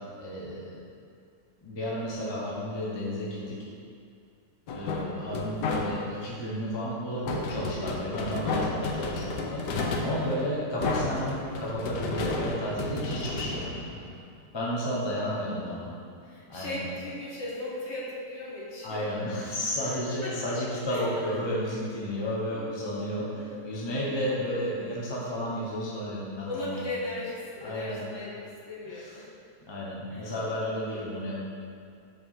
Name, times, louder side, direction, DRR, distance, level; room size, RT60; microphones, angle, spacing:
voice 1, 0.2-0.8 1.6-3.6 4.7-9.6 10.0-14.0 14.5-15.9 16.5-16.8 18.8-26.9 27.6-28.0 28.8-29.1 29.7-31.4, equal, 20° left, -5 dB, 0.8 m, -32 dB
sound 1, 4.7-6.2 7.3-14.4, left 3 dB, 85° left, 1.3 m, -32 dB
voice 2, 4.9-5.2 10.1-10.6 15.2-15.4 16.2-19.0 19.8-20.6 20.9-21.1 22.5-22.8 23.3-23.7 26.4-29.3 30.1-30.5, left 2 dB, 45° left, -6 dB, 1.4 m, -38 dB
5.4 x 4.7 x 5.6 m, 2.3 s
omnidirectional pair, 1.8 m